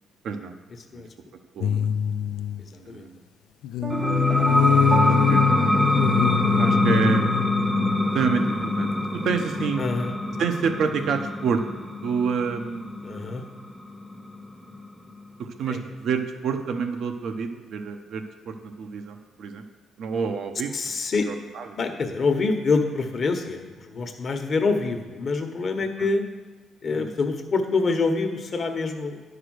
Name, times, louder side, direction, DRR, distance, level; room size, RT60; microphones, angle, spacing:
voice 1, 0.2-0.6 0.9-1.0 1.5-1.9 2.7-3.2 4.7-5.7 6.6-7.3 8.1-9.8 10.4-11.6 12.0-12.9 15.4-19.6 20.0-20.9 21.2-22.0 26.0-26.1 26.9-27.1, right 6 dB, 70° right, 7 dB, 0.8 m, -28 dB
sound 1, 1.6-2.7 3.6-8.2 8.6-8.7, left 9 dB, 90° left, 0.3 m, -24 dB
sound 2, 3.8-6.9, right 3 dB, 45° right, 0.6 m, -31 dB
sound 3, 3.9-15.2, left 1 dB, 15° right, 0.8 m, -25 dB
voice 2, 9.8-10.1 13.0-13.4 15.7-15.8 20.7-21.3 21.8-26.2 26.8-29.2, left 4 dB, 50° left, 5 dB, 1.1 m, -26 dB
10.0 x 4.9 x 6.3 m, 1.3 s
cardioid pair, 90°, 0 cm